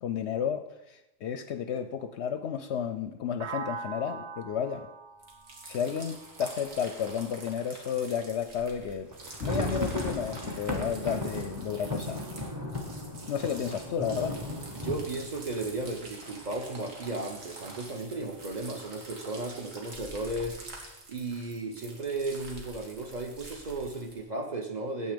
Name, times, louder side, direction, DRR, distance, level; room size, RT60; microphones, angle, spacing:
voice 1, 0.0-4.9 5.7-9.1 9.4-12.2 13.3-14.4, left 8 dB, 65° left, 10 dB, 0.8 m, -32 dB
sound 1, 3.4-7.3, right 5 dB, 60° right, 0.5 m, -42 dB
sound 2, 5.2-24.2, right 2 dB, 75° right, 2.2 m, -47 dB
sound 3, 9.1-16.8 17.1-17.2 17.5-17.7 18.2-18.7, equal, 15° right, 1.0 m, -36 dB
voice 2, 14.7-20.6 21.1-25.1, right 2 dB, 35° right, 4 dB, 0.9 m, -35 dB
9.4 x 7.6 x 5.1 m, 0.91 s
omnidirectional pair, 1.4 m